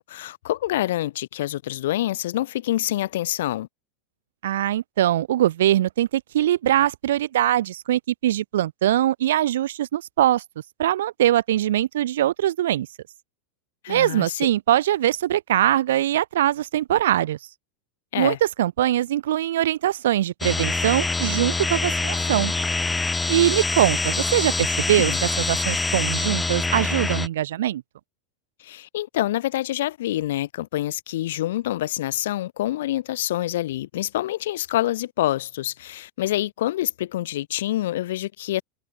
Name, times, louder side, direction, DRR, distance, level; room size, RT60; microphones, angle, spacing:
voice 1, 0.0-3.7 13.8-14.5 18.1-18.4 25.0-25.2 28.6-38.6, left 14 dB, 75° left, 2.3 m, -26 dB
voice 2, 4.4-10.4 10.8-12.9 13.9-17.4 18.2-22.5 23.3-27.8, right 12 dB, 85° right, 1.8 m, -22 dB
sound 1, 20.4-27.3, left 3 dB, 10° left, 2.7 m, -25 dB
supercardioid pair, 160°, 0 cm